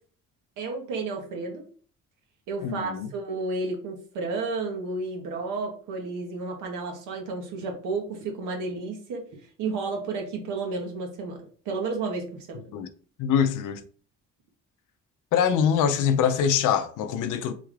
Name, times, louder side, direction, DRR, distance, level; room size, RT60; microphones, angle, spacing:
voice 1, 0.6-1.6 2.5-9.2 9.6-11.4 11.7-12.6, right 3 dB, 90° right, 0.9 m, -32 dB
voice 2, 2.6-3.1 12.7-12.9 13.2-13.8 15.3-17.5, left 8 dB, 90° left, 0.5 m, -24 dB
3.7 x 2.4 x 3.2 m
cardioid pair, 90°, 30 cm